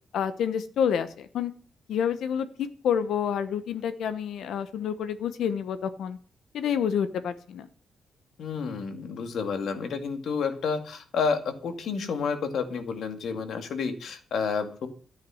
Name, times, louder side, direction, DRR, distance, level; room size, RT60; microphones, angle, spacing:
voice 1, 0.1-1.5 1.9-6.2 6.5-7.7, left 8 dB, 80° left, 11 dB, 1.0 m, -28 dB
voice 2, 8.4-14.9, left 5 dB, 60° left, 7 dB, 2.1 m, -30 dB
13.0 x 9.5 x 6.4 m, 0.41 s
wide cardioid pair, 175°, 0 cm